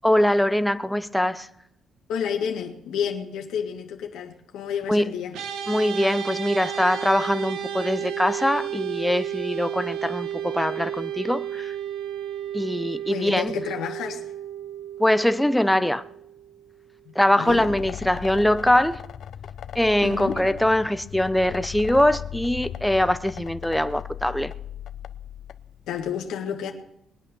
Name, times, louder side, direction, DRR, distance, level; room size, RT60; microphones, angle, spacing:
voice 1, 0.0-1.5 4.9-5.1 5.7-11.7 12.5-13.5 15.0-16.0 17.2-19.0 19.7-24.5, left 1 dB, 5° left, 0.7 m, -22 dB
voice 2, 2.1-5.4 13.1-14.2 17.1-17.7 20.0-20.4 25.9-26.7, left 8 dB, 85° left, 1.7 m, -30 dB
sound 1, 5.3-16.8, right 10 dB, 85° right, 1.7 m, -33 dB
sound 2, 17.5-26.1, left 10 dB, 65° left, 0.7 m, -38 dB
20.5 x 8.5 x 7.0 m
cardioid pair, 90°, 0 cm